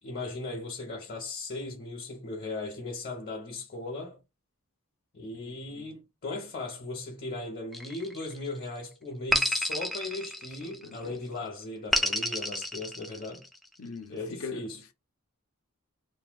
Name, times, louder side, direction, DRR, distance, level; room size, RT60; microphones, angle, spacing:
voice 1, 0.0-4.2 5.1-13.4 14.1-14.8, left 2 dB, 40° left, 0.8 m, -37 dB
voice 2, 5.3-5.9 10.6-11.2 13.8-14.6, left 4 dB, 70° left, 0.6 m, -42 dB
sound 1, 7.7-8.6 9.3-11.0 11.9-13.6, equal, ahead, 0.3 m, -30 dB
2.6 x 2.2 x 3.5 m
head